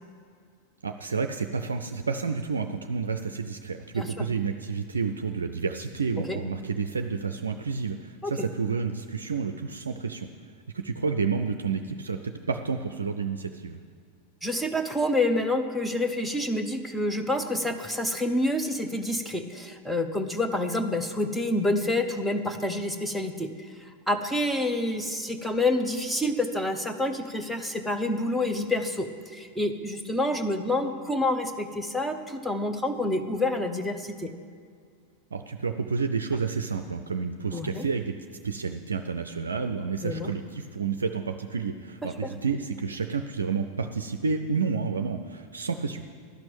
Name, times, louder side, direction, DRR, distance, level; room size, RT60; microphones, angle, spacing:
voice 1, 0.8-10.3 10.7-13.8 35.3-38.2 38.4-46.0, right 5 dB, 75° right, 6 dB, 0.4 m, -30 dB
voice 2, 14.4-23.7 24.1-34.3 37.5-37.9 40.0-40.3 42.0-42.3, left 1 dB, ahead, 6 dB, 0.8 m, -28 dB
12.0 x 6.1 x 8.8 m, 2.1 s
figure-of-eight pair, 90°, 0 cm